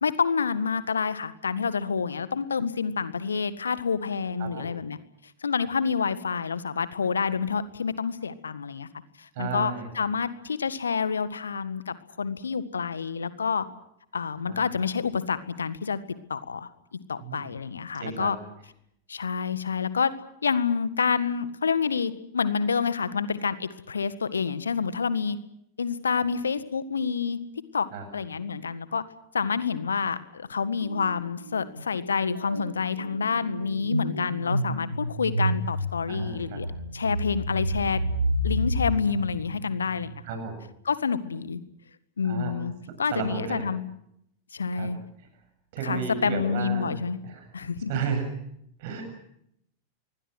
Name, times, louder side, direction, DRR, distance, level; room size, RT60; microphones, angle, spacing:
voice 1, 0.0-5.0 5.4-8.9 9.2-13.7 14.1-16.0 16.3-18.4 19.1-20.1 20.4-25.4 25.8-27.4 27.7-27.9 28.1-29.0 29.3-36.7 36.9-38.0 38.4-40.1 40.9-41.6 42.2-42.7 43.0-43.9 44.5-45.0 45.8-47.2 47.5-47.9, left 5 dB, 70° left, 14 dB, 1.7 m, -28 dB
voice 2, 9.3-9.9 14.5-14.7 17.2-17.6 17.9-18.3 26.2-26.3 27.9-28.0 36.1-36.6 40.2-40.6 42.2-42.5 43.1-43.7 44.7-44.9 45.2-45.3 45.7-47.0 47.2-47.5 47.9-48.3 48.8-49.0, right 6 dB, 50° right, 6 dB, 7.6 m, -33 dB
sound 1, 30.8-31.1 31.4-40.2, equal, 85° right, 2.1 m, -30 dB
27.0 x 22.5 x 6.2 m, 0.75 s
figure-of-eight pair, 90°, 0 cm